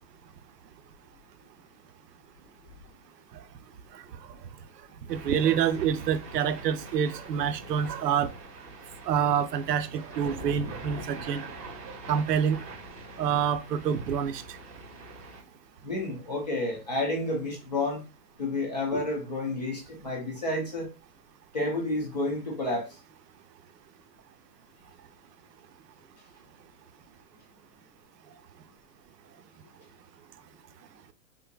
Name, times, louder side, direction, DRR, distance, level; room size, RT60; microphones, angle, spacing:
sound 1, 5.1-15.4, right 2 dB, 40° right, 1.6 m, -44 dB
voice 1, 5.1-8.3 9.1-11.4 12.1-12.6 13.2-14.6, right 8 dB, 80° right, 0.6 m, -27 dB
voice 2, 15.8-18.0 18.4-20.9 21.5-22.9, left 2 dB, 30° left, 0.5 m, -30 dB
3.6 x 2.6 x 2.2 m
hypercardioid pair, 180°, 48 cm